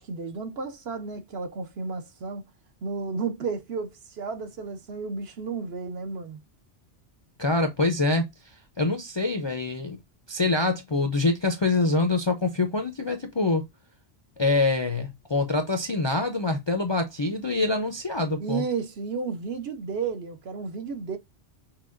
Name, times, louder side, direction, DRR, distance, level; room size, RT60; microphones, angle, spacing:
voice 1, 0.0-2.4 2.8-6.4 18.4-21.2, right 5 dB, 65° right, 1.1 m, -32 dB
voice 2, 7.4-10.0 10.3-13.6 14.4-18.6, left 2 dB, 35° left, 0.4 m, -25 dB
5.8 x 2.3 x 2.4 m
omnidirectional pair, 1.2 m